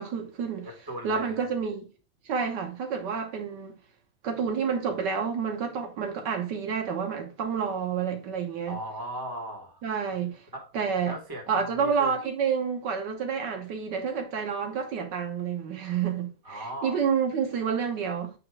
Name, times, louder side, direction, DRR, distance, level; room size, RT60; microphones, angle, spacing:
voice 1, 0.0-0.7 1.0-1.9 2.3-3.7 4.2-8.8 9.8-10.4 10.7-11.1 11.5-18.3, right 6 dB, 90° right, 1.8 m, -29 dB
voice 2, 0.6-1.5 8.7-9.8 10.5-10.7 11.0-12.2 16.4-17.0, right 1 dB, 15° right, 1.8 m, -38 dB
8.3 x 3.0 x 4.7 m
omnidirectional pair, 1.8 m